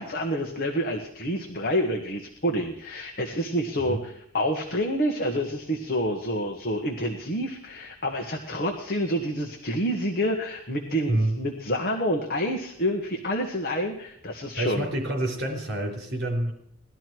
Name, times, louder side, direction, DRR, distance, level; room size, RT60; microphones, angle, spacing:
voice 1, 0.0-14.9, equal, 40° left, 3 dB, 1.5 m, -28 dB
voice 2, 11.1-11.4 14.6-16.5, right 1 dB, 50° right, 2 dB, 4.3 m, -27 dB
19.0 x 12.0 x 4.7 m, 0.71 s
head